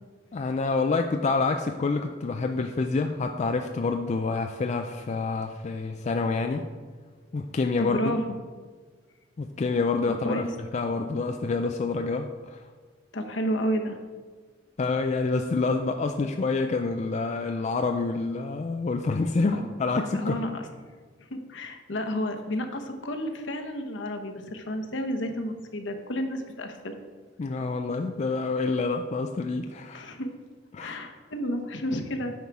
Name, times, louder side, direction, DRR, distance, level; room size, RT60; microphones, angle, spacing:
voice 1, 0.3-6.6 7.3-8.2 9.4-10.5 10.7-12.7 14.8-20.4 27.4-30.1 30.7-31.0, left 3 dB, 35° left, 5 dB, 0.4 m, -27 dB
voice 2, 7.8-8.4 10.2-10.5 13.1-14.0 19.5-19.7 20.1-20.7 21.3-26.9 29.9-30.3 30.8-32.3, equal, 70° left, 4 dB, 1.0 m, -31 dB
9.3 x 5.6 x 4.7 m, 1.5 s
head